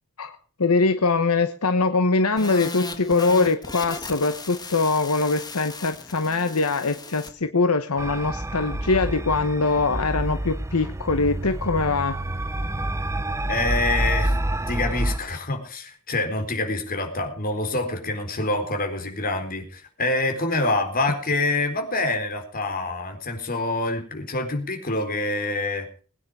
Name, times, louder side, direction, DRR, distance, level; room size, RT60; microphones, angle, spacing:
voice 1, 0.2-12.2, left 3 dB, 75° left, 8 dB, 1.1 m, -22 dB
sound 1, 2.4-7.3, left 3 dB, 20° left, 1.8 m, -36 dB
sound 2, 8.0-15.2, right 1 dB, 15° right, 0.7 m, -28 dB
voice 2, 13.5-14.4 14.7-25.9, left 2 dB, 40° left, 4 dB, 4.1 m, -26 dB
21.5 x 9.5 x 4.8 m, 0.39 s
head